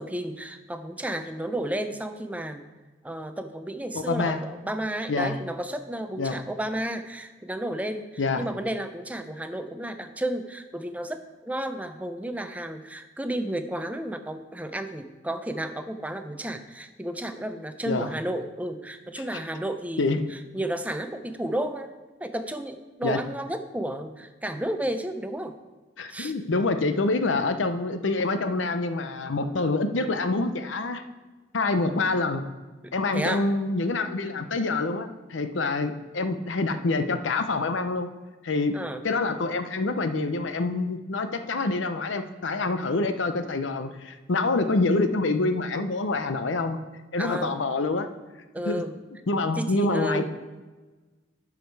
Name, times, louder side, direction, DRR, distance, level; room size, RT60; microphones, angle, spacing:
voice 1, 0.0-2.7 3.0-8.0 8.4-21.9 22.2-25.5 26.1-26.3 32.8-33.5 38.7-39.0 47.2-47.6 48.5-49.0 49.6-50.2, right 1 dB, 10° right, 8 dB, 0.5 m, -32 dB
voice 2, 3.9-4.4 5.1-5.4 6.2-6.4 8.2-8.4 17.9-18.1 19.2-19.4 20.0-20.2 23.0-23.2 26.0-31.0 31.5-32.4 32.9-38.1 38.4-38.7 39.0-46.8 47.1-48.1 48.7-48.8 49.3-50.3, left 3 dB, 75° left, 9 dB, 0.7 m, -26 dB
12.0 x 4.9 x 4.7 m, 1.3 s
head